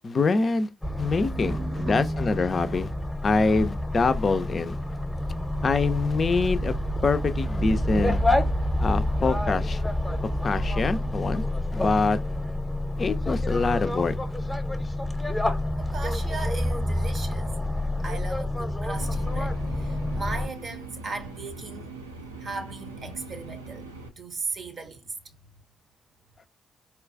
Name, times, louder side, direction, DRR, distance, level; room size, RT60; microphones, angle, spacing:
voice 1, 0.0-0.7 1.0-2.9 3.2-4.8 5.6-6.8 7.0-8.2 8.8-9.8 10.4-11.4 11.7-12.2 13.0-14.2, left 4 dB, 40° left, 0.4 m, -25 dB
sound 1, 0.8-20.5, left 1 dB, 10° left, 0.7 m, -28 dB
voice 2, 1.2-2.2 9.1-9.5 15.8-17.5 18.0-21.9 22.4-23.9 24.1-25.4, right 3 dB, 45° right, 0.6 m, -37 dB
sound 2, 18.9-24.1, right 3 dB, 85° right, 0.4 m, -41 dB
4.3 x 2.3 x 2.5 m
figure-of-eight pair, 40°, 0 cm